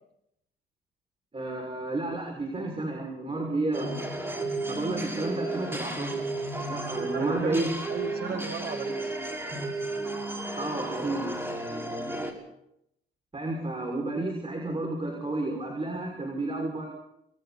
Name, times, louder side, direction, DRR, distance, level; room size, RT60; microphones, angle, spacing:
voice 1, 1.3-4.0 4.7-6.2 6.7-7.7 10.6-11.3 13.3-16.9, right 2 dB, 30° right, 1 dB, 6.4 m, -31 dB
sound 1, 3.7-12.3, right 2 dB, 10° right, 5.7 m, -33 dB
voice 2, 7.0-9.2, right 5 dB, 50° right, 6 dB, 1.9 m, -36 dB
30.0 x 21.0 x 4.4 m, 0.79 s
cardioid pair, 90°, 20 cm